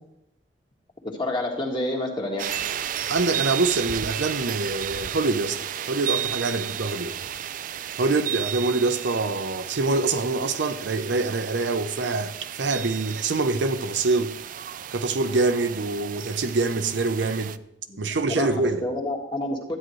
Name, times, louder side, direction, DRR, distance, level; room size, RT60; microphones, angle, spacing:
voice 1, 1.0-2.5 17.9-19.8, left 1 dB, 25° left, 1.7 m, -29 dB
sound 1, 2.4-17.6, right 10 dB, 50° right, 0.3 m, -33 dB
voice 2, 3.1-7.2 8.0-14.4 14.9-17.5 18.0-18.8, right 3 dB, 90° right, 0.7 m, -25 dB
12.5 x 9.2 x 3.1 m
head